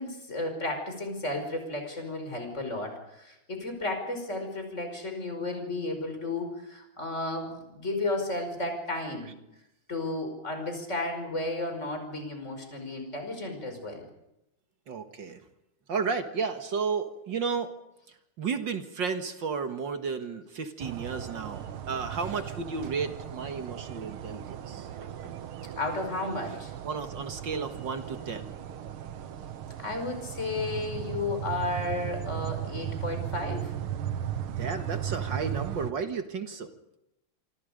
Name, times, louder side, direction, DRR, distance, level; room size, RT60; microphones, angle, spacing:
voice 1, 0.0-9.3 9.9-14.1 25.8-26.7 29.8-33.7, left 2 dB, 30° left, 5 dB, 5.6 m, -33 dB
voice 2, 14.9-15.4 15.9-17.7 18.4-25.3 26.8-28.5 34.5-36.7, right 5 dB, 60° right, 7 dB, 2.3 m, -33 dB
sound 1, 20.8-35.9, right 10 dB, 75° right, 2.0 m, -37 dB
27.5 x 25.0 x 5.2 m, 0.85 s
omnidirectional pair, 2.4 m